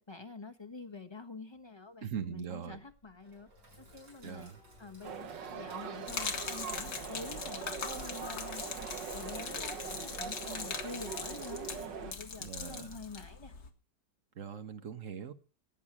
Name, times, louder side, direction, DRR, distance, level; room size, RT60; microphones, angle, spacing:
voice 1, 0.0-3.5 3.8-4.5 4.8-13.5, left 3 dB, 15° left, 1.1 m, -47 dB
voice 2, 2.0-2.8 4.2-4.6 12.4-12.9 14.3-15.3, right 8 dB, 50° right, 1.6 m, -41 dB
Sink (filling or washing), 2.9-13.7, equal, 70° right, 6.9 m, -62 dB
sound 1, 5.0-12.1, right 7 dB, 90° right, 2.0 m, -42 dB
Gurgling / Liquid, 6.1-13.7, left 5 dB, 60° left, 2.1 m, -41 dB
17.5 x 9.3 x 6.0 m
omnidirectional pair, 1.9 m